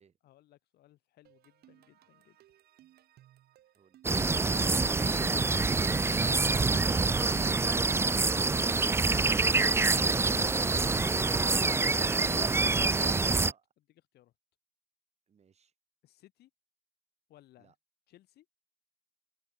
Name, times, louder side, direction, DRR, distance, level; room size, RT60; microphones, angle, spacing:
voice 1, 0.2-2.6 3.7-3.9 4.2-8.1 14.1-14.3 16.0-16.5 17.3-17.7 18.1-18.5, left 14 dB, 70° left, 6.0 m, -58 dB
sound 1, 1.2-13.5, right 13 dB, 70° right, 4.0 m, -62 dB
sound 2, 4.0-13.5, right 3 dB, 15° right, 0.6 m, -26 dB
voice 2, 15.3-15.7 17.6-17.8, right 7 dB, 40° right, 7.2 m, -59 dB
open air
cardioid pair, 110°, 17 cm